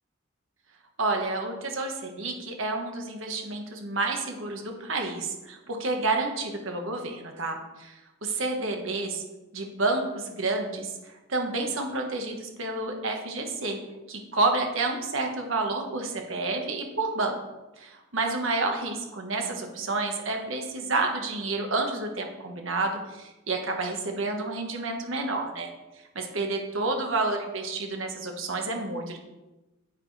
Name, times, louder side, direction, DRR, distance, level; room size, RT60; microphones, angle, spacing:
voice 1, 1.0-7.9 8.2-9.2 9.5-10.9 11.3-13.8 14.1-17.4 17.8-17.9 18.1-25.7 26.1-29.2, right 3 dB, 75° right, 2 dB, 1.5 m, -29 dB
10.0 x 8.8 x 3.4 m, 1.0 s
head